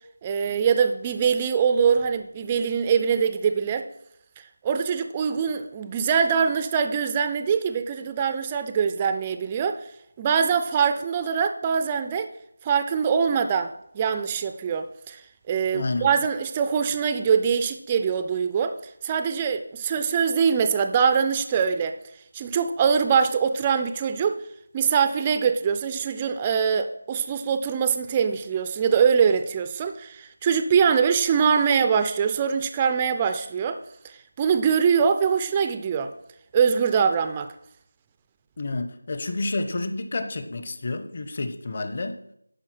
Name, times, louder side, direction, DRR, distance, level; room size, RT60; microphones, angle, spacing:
voice 1, 0.2-3.9 4.6-9.8 10.2-12.3 12.6-18.8 19.0-21.9 22.3-24.4 24.7-33.8 34.0-36.1 36.5-37.5, right 6 dB, 15° right, 0.3 m, -23 dB
voice 2, 15.7-16.1 38.6-42.2, left 2 dB, 30° left, 0.8 m, -29 dB
10.5 x 4.5 x 6.0 m
figure-of-eight pair, 175°, 0 cm